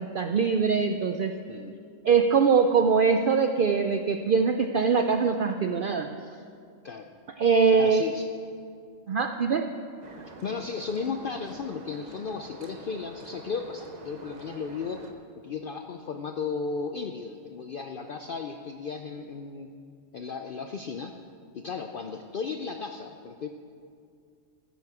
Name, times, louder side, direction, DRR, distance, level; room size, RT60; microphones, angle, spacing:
voice 1, 0.0-1.3 2.0-6.1 7.4-8.0 9.1-9.7, right 5 dB, 85° right, 6 dB, 0.4 m, -22 dB
voice 2, 7.8-8.3 10.4-15.0 15.4-19.8 20.1-21.1 21.5-23.5, left 5 dB, 70° left, 5 dB, 0.5 m, -35 dB
sound 1, 10.0-15.1, right 3 dB, 35° right, 0.8 m, -47 dB
15.0 x 9.1 x 4.9 m, 2.3 s
omnidirectional pair, 1.5 m